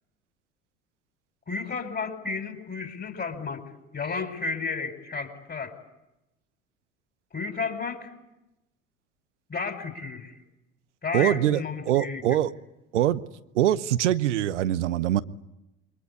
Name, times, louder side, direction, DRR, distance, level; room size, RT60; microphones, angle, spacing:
voice 1, 1.5-3.6 3.9-5.7 7.3-8.1 9.5-10.4 11.0-12.4, left 4 dB, 25° left, 5.1 m, -32 dB
voice 2, 11.1-11.6 11.9-12.5 12.9-13.2 13.5-15.2, right 12 dB, 70° right, 1.0 m, -23 dB
29.0 x 23.5 x 8.4 m
figure-of-eight pair, 65°, 37 cm